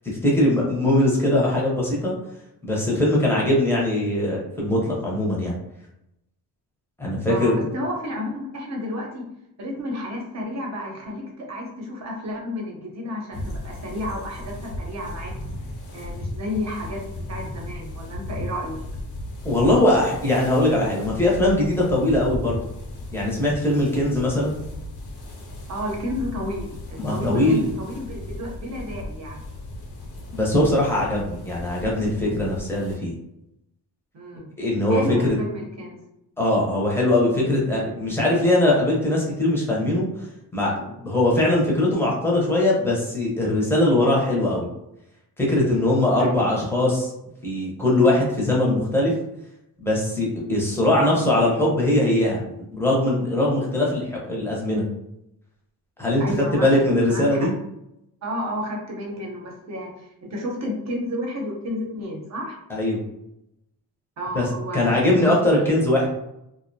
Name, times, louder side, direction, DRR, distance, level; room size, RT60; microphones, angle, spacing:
voice 1, 0.0-2.1 2.6-5.6 7.0-7.5 19.4-22.6 23.1-24.6 27.0-27.7 30.3-33.2 34.6-35.3 36.4-40.3 40.5-44.7 45.4-47.1 47.4-49.1 49.8-52.4 52.7-54.8 56.0-56.2 56.5-57.5 62.7-63.0 64.3-66.1, left 1 dB, 5° left, -4 dB, 0.6 m, -21 dB
voice 2, 7.3-9.3 9.6-15.3 15.9-17.0 17.3-18.8 25.7-29.5 34.1-34.5 34.9-36.0 46.2-46.5 56.2-57.5 58.2-62.6 64.2-65.7, left 1 dB, 45° right, 0 dB, 0.7 m, -31 dB
sound 1, 13.3-33.0, left 1 dB, 85° left, 0.8 m, -36 dB
2.5 x 2.1 x 2.6 m, 0.84 s
wide cardioid pair, 140°, 37 cm